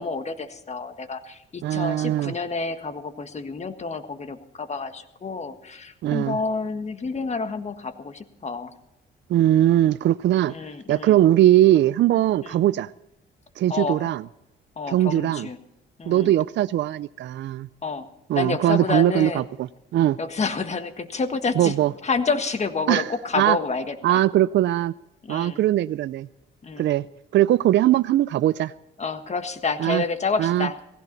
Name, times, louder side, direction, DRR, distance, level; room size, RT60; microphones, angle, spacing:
voice 1, 0.0-8.7 10.5-11.2 12.4-12.6 13.7-14.1 14.8-15.6 16.0-16.3 17.8-18.1 18.3-19.4 20.2-21.7 22.0-24.2 25.2-25.6 26.6-26.9 29.0-30.8, left 4 dB, 35° left, 9 dB, 1.6 m, -29 dB
voice 2, 1.6-2.3 6.0-6.4 9.3-10.5 10.9-12.9 13.6-14.2 14.9-15.5 16.1-17.7 18.3-19.4 19.9-20.2 21.6-21.9 22.9-23.1 23.4-23.6 24.0-24.9 25.3-26.3 26.8-27.1 27.3-28.7 29.8-30.0 30.4-30.7, right 13 dB, 65° right, 15 dB, 0.4 m, -20 dB
18.0 x 16.5 x 4.0 m, 0.91 s
cardioid pair, 90°, 20 cm